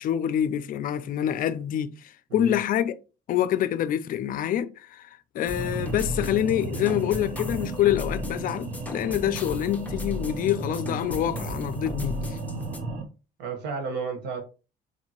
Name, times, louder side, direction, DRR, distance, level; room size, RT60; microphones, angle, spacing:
voice 1, 0.0-2.9 3.3-5.1 5.3-12.4, left 11 dB, 55° left, 0.4 m, -26 dB
sound 1, 5.5-12.8, left 2 dB, 10° left, 0.8 m, -37 dB
sound 2, 5.5-13.0, right 2 dB, 50° right, 0.8 m, -34 dB
voice 2, 13.4-14.4, right 5 dB, 90° right, 1.2 m, -32 dB
4.5 x 2.7 x 2.9 m
cardioid pair, 110°, 17 cm